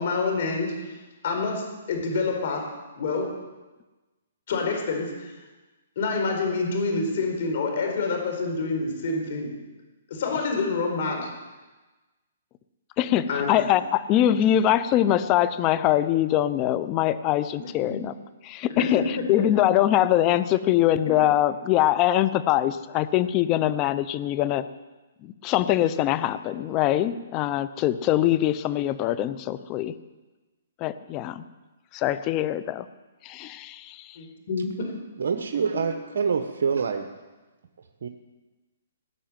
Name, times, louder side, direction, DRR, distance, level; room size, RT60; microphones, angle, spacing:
voice 1, 0.0-2.6 2.9-3.3 4.5-5.3 6.0-9.5 10.1-11.3 13.3-13.6 17.6-18.0 18.8-19.4 34.2-34.9, left 3 dB, 55° left, 2 dB, 4.6 m, -27 dB
voice 2, 13.0-18.1 18.4-19.0 19.3-24.6 25.2-29.9 30.8-31.4 31.9-32.9 33.2-34.2, left 12 dB, 30° left, 13 dB, 0.7 m, -23 dB
voice 3, 35.2-37.1 38.0-38.1, right 6 dB, 65° right, 6 dB, 1.1 m, -26 dB
18.0 x 6.8 x 9.1 m, 1.2 s
hypercardioid pair, 145°, 0 cm